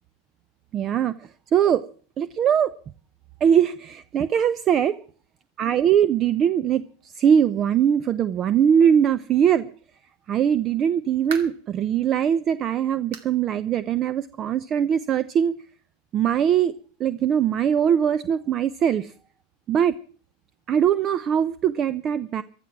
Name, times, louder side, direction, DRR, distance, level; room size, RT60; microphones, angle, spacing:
voice 1, 0.7-1.8 2.2-2.7 3.4-5.0 5.6-9.7 10.3-15.5 16.1-16.7 17.0-19.1 19.7-20.0 20.7-22.4, right 8 dB, 40° right, 17 dB, 0.6 m, -21 dB
sound 1, 10.9-11.7 12.2-12.3 13.1-13.4 13.7-13.8 14.3-14.4 15.5-15.6, right 7 dB, 70° right, 2.3 m, -39 dB
15.5 x 12.5 x 6.1 m, 0.42 s
hypercardioid pair, 95°, 0 cm